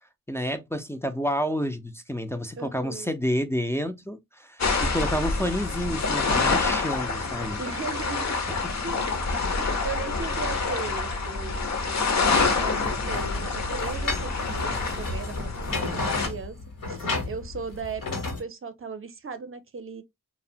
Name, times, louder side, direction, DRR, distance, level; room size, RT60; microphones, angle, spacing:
voice 1, 0.3-7.6 8.5-8.6, equal, 10° left, 0.3 m, -29 dB
voice 2, 2.6-3.1 7.6-8.4 8.8-9.2 9.6-11.6 12.1-16.6 16.9-20.0, right 5 dB, 40° right, 0.6 m, -37 dB
sound 1, 4.6-16.3, left 4 dB, 50° left, 0.6 m, -27 dB
sound 2, 12.2-18.4, left 2 dB, 70° left, 1.0 m, -33 dB
2.7 x 2.0 x 2.6 m
wide cardioid pair, 85°, 34 cm